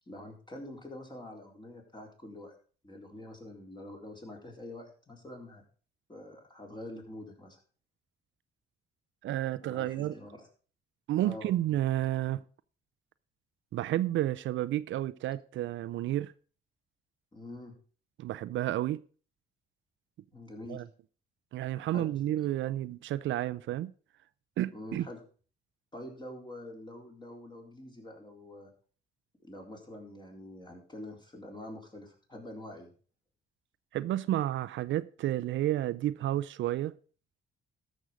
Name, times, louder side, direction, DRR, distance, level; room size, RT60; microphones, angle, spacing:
voice 1, 0.1-2.5 2.8-5.6 6.1-7.6 9.6-10.3 11.2-11.6 17.3-17.7 20.3-20.9 21.9-22.1 24.7-25.2 25.9-28.7 29.4-32.9, left 1 dB, 20° left, 3.9 m, -46 dB
voice 2, 9.2-10.1 11.1-12.4 13.7-16.3 18.2-19.0 20.7-20.9 21.5-23.9 24.6-25.1 33.9-36.9, right 13 dB, 75° right, 0.5 m, -31 dB
13.0 x 6.3 x 5.1 m
cardioid pair, 90°, 20 cm